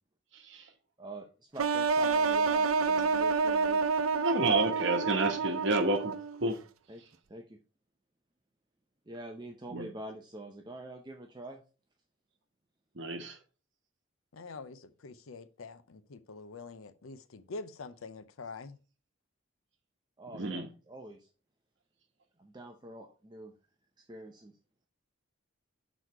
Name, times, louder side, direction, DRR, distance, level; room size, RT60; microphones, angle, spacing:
voice 1, 0.3-0.7 4.2-6.1 6.4-6.6 9.7-9.9 12.9-13.4 20.3-20.7, right 2 dB, 60° right, 1.1 m, -30 dB
voice 2, 1.5-3.9 6.9-7.6 9.1-11.6 20.2-21.3 22.4-23.5 24.0-24.6, right 1 dB, 20° right, 0.6 m, -46 dB
sound 1, 1.6-6.4, right 4 dB, 85° right, 0.5 m, -28 dB
voice 3, 14.3-18.8, left 3 dB, 85° left, 0.6 m, -45 dB
6.4 x 4.1 x 4.6 m
head